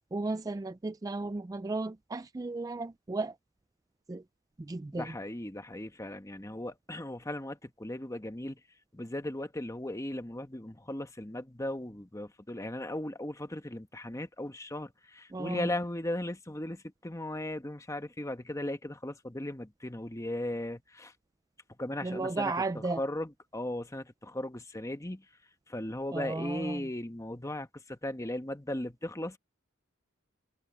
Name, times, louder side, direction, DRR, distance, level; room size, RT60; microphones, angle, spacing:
voice 1, 0.1-3.4 4.1-4.2 4.6-5.1 15.3-15.7 22.0-23.0 26.1-26.9, right 3 dB, 15° right, 0.3 m, -34 dB
voice 2, 4.9-8.6 8.9-21.1 21.8-25.2 25.7-29.4, left 1 dB, 15° left, 1.2 m, -37 dB
head